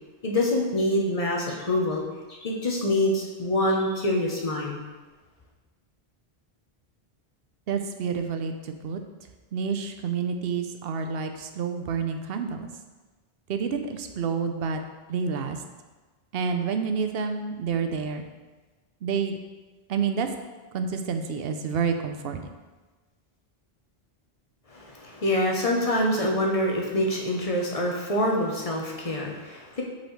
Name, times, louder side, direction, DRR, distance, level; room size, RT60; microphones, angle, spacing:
voice 1, 0.2-2.0 2.3-4.8 24.7-29.8, left 1 dB, 40° left, -1 dB, 0.8 m, -25 dB
voice 2, 7.7-9.0 9.5-12.7 13.5-14.8 15.1-15.6 16.3-18.2 19.0-19.3 19.9-20.3 20.7-22.5, right 6 dB, 75° right, 6 dB, 0.8 m, -29 dB
7.9 x 4.1 x 3.1 m, 1.3 s
omnidirectional pair, 1.0 m